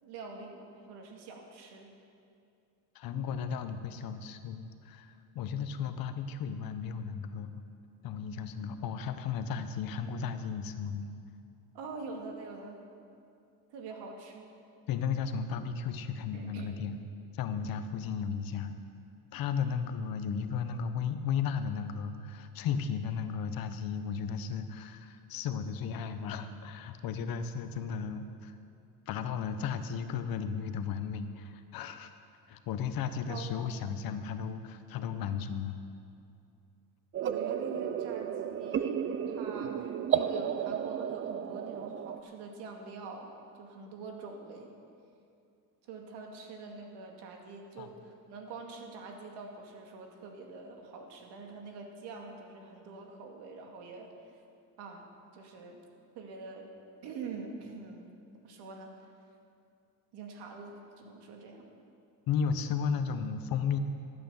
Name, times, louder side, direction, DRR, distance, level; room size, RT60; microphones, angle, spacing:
voice 1, 0.0-1.9 11.7-12.8 13.7-14.5 16.3-16.8 33.3-33.8 37.2-39.0 39.3-44.7 45.8-54.1 54.8-55.1 55.3-55.8 56.1-56.7 57.0-58.1 58.4-58.9 60.1-61.7, right 4 dB, 70° right, 2 dB, 2.3 m, -45 dB
voice 2, 2.9-7.6 8.0-11.1 14.9-17.0 17.3-18.7 19.3-28.6 29.1-32.1 32.5-35.8 47.8-47.9 62.3-63.8, left 6 dB, 55° left, 9 dB, 1.0 m, -34 dB
sound 1, 37.1-42.2, right 8 dB, 30° right, 0.4 m, -33 dB
14.0 x 8.9 x 7.1 m, 2.5 s
cardioid pair, 120°, 42 cm